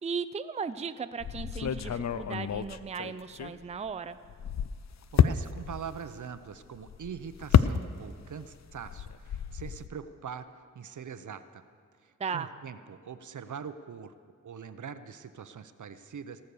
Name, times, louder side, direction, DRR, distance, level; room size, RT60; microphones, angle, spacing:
voice 1, 0.0-4.2 12.2-12.5, right 5 dB, 20° right, 12 dB, 0.4 m, -36 dB
sound 1, 1.2-3.9 4.2-8.3 8.6-9.9, left 8 dB, 55° left, 0.5 m, -29 dB
voice 2, 5.1-10.5 10.7-11.6 12.0-14.1 14.4-16.4, right 7 dB, 65° right, 11 dB, 0.7 m, -42 dB
18.0 x 6.5 x 7.0 m, 2.1 s
cardioid pair, 55°, 32 cm